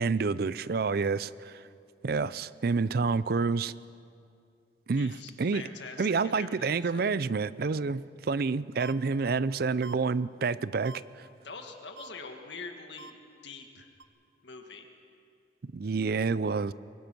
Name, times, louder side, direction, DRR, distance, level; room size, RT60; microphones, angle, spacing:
voice 1, 0.0-1.6 2.0-3.7 4.9-5.6 6.0-11.3 15.7-16.7, right 4 dB, 55° right, 17 dB, 0.5 m, -28 dB
voice 2, 5.0-7.1 11.4-13.2 13.4-13.9 14.4-14.9, left 4 dB, 80° left, 4 dB, 1.7 m, -44 dB
sound 1, 8.8-8.9 9.8-9.9 10.8-11.0 12.0-12.1 13.0-13.1 14.0-14.1, right 3 dB, 90° right, 0.8 m, -44 dB
24.5 x 21.0 x 6.1 m, 2.5 s
head